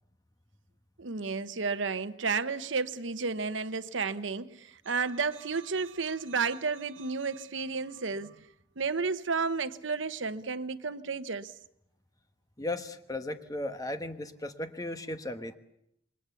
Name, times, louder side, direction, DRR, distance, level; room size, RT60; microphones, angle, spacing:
voice 1, 1.0-8.3 8.8-11.5, right 4 dB, 80° right, 1.0 m, -32 dB
voice 2, 12.6-15.6, left 1 dB, 20° left, 1.2 m, -36 dB
27.5 x 22.0 x 7.1 m
head